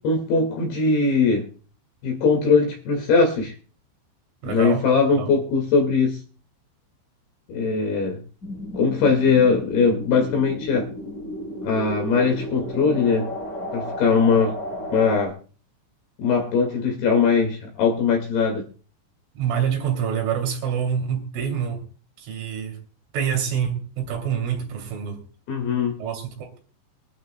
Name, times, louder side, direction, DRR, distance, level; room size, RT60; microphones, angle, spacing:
voice 1, 0.0-1.5 2.0-3.5 4.4-6.2 7.5-8.2 8.7-10.9 11.6-13.3 13.7-14.5 14.9-15.3 16.2-18.6 25.5-25.9, left 4 dB, 60° left, 2 dB, 3.7 m, -20 dB
voice 2, 4.4-4.9 5.1-5.3 19.4-21.8 22.2-22.8 23.1-25.3 26.0-26.6, right 8 dB, 85° right, 3 dB, 5.6 m, -26 dB
sound 1, 8.4-15.3, equal, 25° left, 2.6 m, -33 dB
24.0 x 12.0 x 2.2 m, 0.39 s
omnidirectional pair, 5.4 m